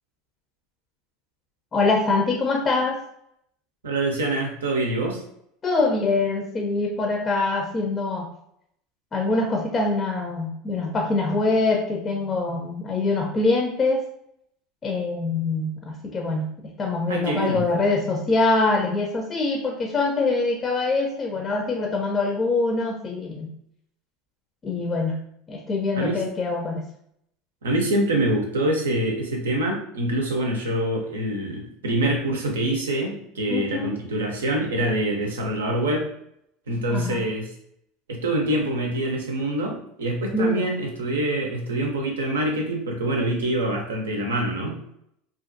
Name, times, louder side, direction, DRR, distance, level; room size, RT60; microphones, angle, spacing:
voice 1, 1.7-3.0 5.6-8.3 9.1-14.0 14.8-23.5 24.6-25.2 25.5-26.9 33.5-34.0 36.9-37.2 40.3-40.7, left 3 dB, 30° left, 1 dB, 0.4 m, -24 dB
voice 2, 3.8-5.2 17.1-17.6 25.9-26.2 27.6-36.1 36.7-37.5 38.1-45.0, right 1 dB, 90° right, 1 dB, 0.6 m, -25 dB
2.5 x 2.4 x 2.5 m, 0.72 s
hypercardioid pair, 85°, 0 cm